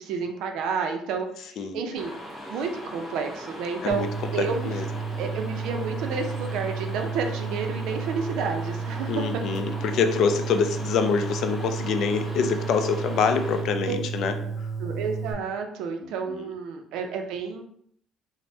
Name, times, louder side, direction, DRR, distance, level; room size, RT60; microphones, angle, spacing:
voice 1, 0.0-2.1 2.5-4.1 4.3-4.8 5.2-9.2 13.9-14.0 14.4-14.5 14.8-17.6, right 5 dB, 75° right, 4 dB, 0.4 m, -30 dB
sound 1, 1.9-13.6, equal, 5° left, 0.6 m, -40 dB
sound 2, 3.9-15.3, right 5 dB, 40° left, 0.8 m, -32 dB
voice 2, 4.4-4.8 9.1-14.3 16.4-16.5, left 6 dB, 60° left, 7 dB, 0.3 m, -25 dB
3.2 x 2.0 x 2.7 m, 0.66 s
cardioid pair, 135°, 0 cm